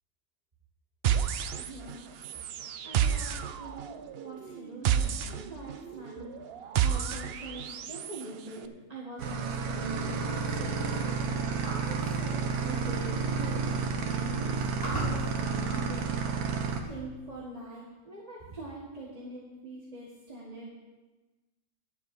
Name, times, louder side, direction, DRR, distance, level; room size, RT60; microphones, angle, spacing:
sound 1, 1.0-2.0 2.2-8.2, right 9 dB, 90° right, 0.5 m, -30 dB
voice 1, 1.6-2.1 2.8-14.7 15.0-16.2 16.8-20.7, right 2 dB, 25° right, -5 dB, 1.6 m, -43 dB
sound 2, 9.2-16.8, right 5 dB, 70° right, 1.5 m, -31 dB
sound 3, 11.6-12.1 13.1-13.2 13.5-13.8 14.4-16.3, right 1 dB, 15° left, 4.6 m, -37 dB
10.5 x 7.8 x 6.9 m, 1.2 s
omnidirectional pair, 1.7 m